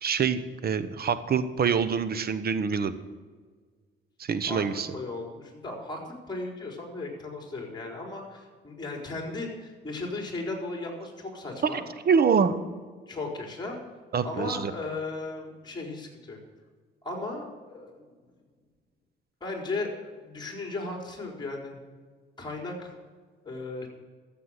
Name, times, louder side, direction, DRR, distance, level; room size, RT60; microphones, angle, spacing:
voice 1, 0.0-2.9 4.2-4.9 11.6-11.8 12.1-12.6 14.1-14.7, right 6 dB, 50° right, 12 dB, 1.1 m, -25 dB
voice 2, 4.5-11.8 13.1-13.8 14.2-16.4 17.0-18.1 19.4-21.8 22.4-22.9 23.4-23.9, left 2 dB, 20° left, 1 dB, 4.3 m, -36 dB
14.0 x 7.6 x 6.6 m, 1.5 s
cardioid pair, 90°, 20 cm